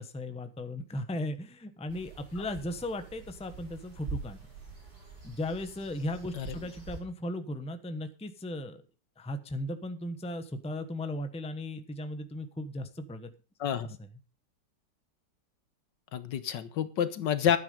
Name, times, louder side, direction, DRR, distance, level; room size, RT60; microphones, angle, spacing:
voice 1, 0.0-4.4 5.2-8.8 9.2-13.3, left 1 dB, 5° left, 9 dB, 0.7 m, -36 dB
sound 1, 1.9-7.0, right 4 dB, 70° right, 5.5 m, -45 dB
voice 2, 13.6-14.0 16.1-17.6, left 9 dB, 85° left, 13 dB, 1.7 m, -29 dB
12.5 x 9.5 x 5.1 m, 0.35 s
omnidirectional pair, 1.9 m